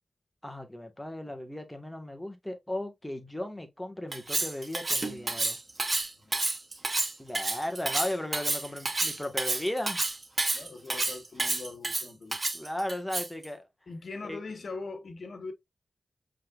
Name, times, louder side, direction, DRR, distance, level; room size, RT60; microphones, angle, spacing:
voice 1, 0.4-5.6 7.2-10.0 12.5-13.6 14.2-14.4, left 1 dB, 10° left, 1.5 m, -36 dB
Cutlery silverware, 4.1-13.4, right 2 dB, 45° right, 1.1 m, -30 dB
voice 2, 10.5-12.4 13.9-15.5, left 3 dB, 70° left, 1.2 m, -41 dB
5.6 x 3.5 x 2.4 m
cardioid pair, 45°, 0 cm